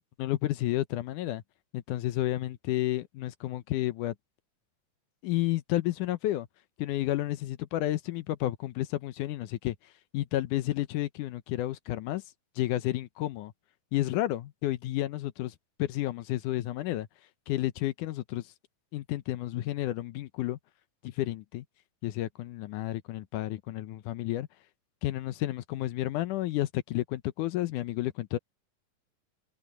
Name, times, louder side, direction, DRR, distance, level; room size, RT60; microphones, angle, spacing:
voice 1, 0.2-1.4 1.7-4.1 5.2-6.5 6.8-9.8 10.1-12.2 12.6-13.5 13.9-15.5 15.8-17.1 17.5-18.4 18.9-20.6 21.0-21.6 22.0-24.5 25.0-28.4, left 15 dB, 75° left, 2.2 m, -31 dB
omnidirectional pair, 3.9 m